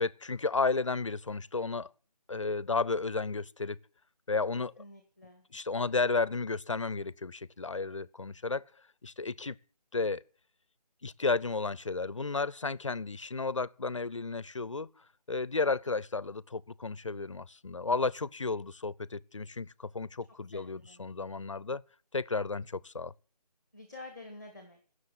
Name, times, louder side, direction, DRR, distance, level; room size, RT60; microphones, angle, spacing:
voice 1, 0.0-1.9 2.3-3.8 4.3-4.7 5.5-8.6 9.0-9.6 9.9-10.2 11.0-21.8 22.1-23.1, left 4 dB, 45° left, 0.6 m, -33 dB
voice 2, 4.5-5.4 20.5-21.1 23.7-24.8, left 2 dB, 10° right, 1.4 m, -49 dB
17.0 x 6.4 x 9.2 m
figure-of-eight pair, 175°, 21 cm